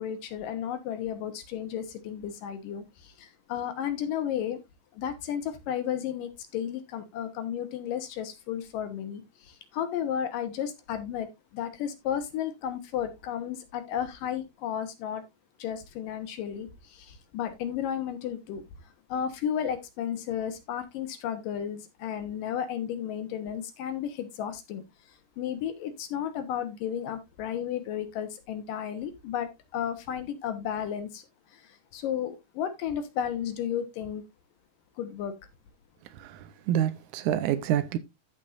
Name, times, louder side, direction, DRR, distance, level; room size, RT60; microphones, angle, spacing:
voice 1, 0.0-4.6 4.9-15.2 15.6-31.2 31.5-34.2 35.0-35.3, left 9 dB, 70° left, 2.6 m, -33 dB
voice 2, 36.1-38.0, right 11 dB, 85° right, 1.7 m, -28 dB
15.0 x 5.4 x 2.5 m
omnidirectional pair, 4.3 m